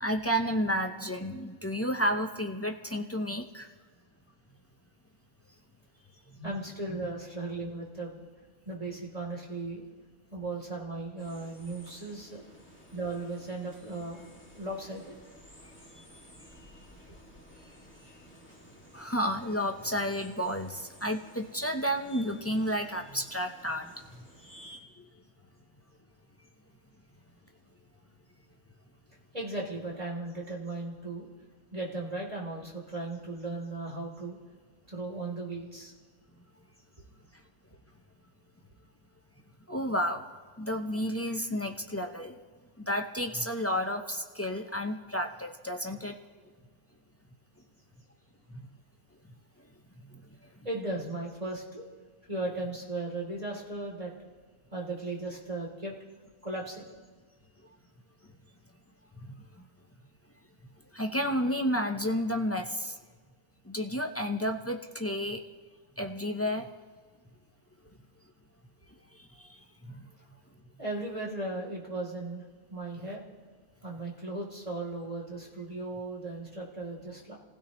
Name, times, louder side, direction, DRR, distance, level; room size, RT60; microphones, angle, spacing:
voice 1, 0.0-3.7 18.9-23.9 25.0-25.1 39.7-40.2 40.6-42.4 42.8-46.1 59.4-59.5 60.9-63.0 63.7-65.4 66.0-66.7 69.4-69.5 69.9-70.1, equal, 25° left, 3 dB, 0.3 m, -31 dB
voice 2, 6.4-8.2 8.6-9.8 10.3-12.4 12.9-14.2 14.5-15.1 29.3-31.3 31.7-34.4 34.9-35.9 50.6-51.8 52.3-54.1 54.7-55.9 56.4-56.8 70.8-72.4 72.7-73.2 73.8-77.4, right 2 dB, 20° right, -3 dB, 3.4 m, -36 dB
sound 1, 11.2-24.8, equal, 5° left, 2.4 m, -54 dB
29.0 x 16.0 x 3.1 m, 1.5 s
omnidirectional pair, 1.7 m